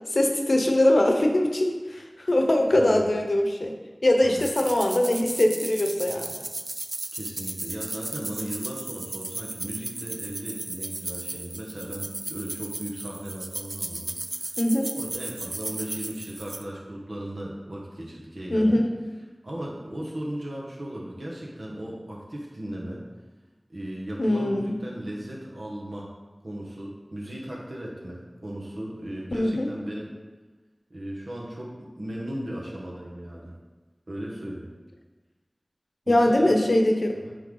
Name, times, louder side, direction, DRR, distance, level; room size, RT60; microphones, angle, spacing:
voice 1, 0.1-3.7 4.0-6.4 14.6-14.9 18.5-18.9 24.2-24.8 29.3-29.7 36.1-37.1, left 1 dB, 70° left, 3 dB, 0.8 m, -22 dB
sound 1, 4.4-16.6, right 2 dB, 55° right, 0.4 m, -35 dB
voice 2, 7.1-14.6 15.0-18.8 19.4-23.0 23.7-26.1 26.4-30.1 30.9-33.6 34.1-34.7 36.1-36.5 37.2-37.3, right 1 dB, 70° right, -3 dB, 1.4 m, -36 dB
9.4 x 3.5 x 3.8 m, 1.3 s
wide cardioid pair, 45°, 0 cm